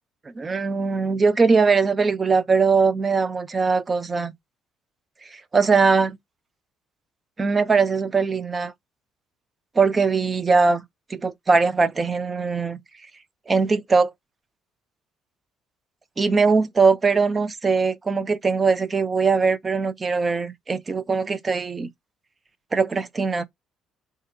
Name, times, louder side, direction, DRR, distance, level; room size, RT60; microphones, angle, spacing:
voice 1, 0.4-4.3 5.3-6.2 7.4-8.7 9.8-10.8 11.1-12.8 13.5-14.1 16.2-21.9 22.7-23.4, right 4 dB, 35° right, 0.6 m, -21 dB
2.7 x 2.1 x 3.8 m
hypercardioid pair, 55°, 0 cm